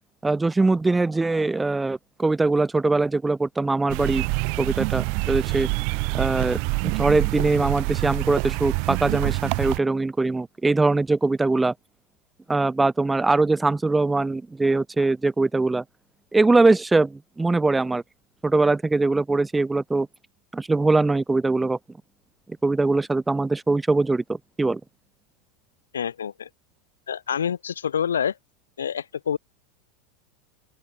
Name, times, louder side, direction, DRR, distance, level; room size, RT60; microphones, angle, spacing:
voice 1, 0.2-4.3 4.6-5.7 6.1-11.7 12.5-15.8 16.3-18.0 18.4-20.1 20.5-21.8 22.6-24.8, right 3 dB, 10° right, 2.1 m, -22 dB
sound 1, 3.9-9.8, right 40 dB or more, 50° right, 7.4 m, -26 dB
voice 2, 25.9-26.5 27.1-28.4 28.8-29.4, left 8 dB, 70° left, 3.9 m, -27 dB
open air
figure-of-eight pair, 85°, 0 cm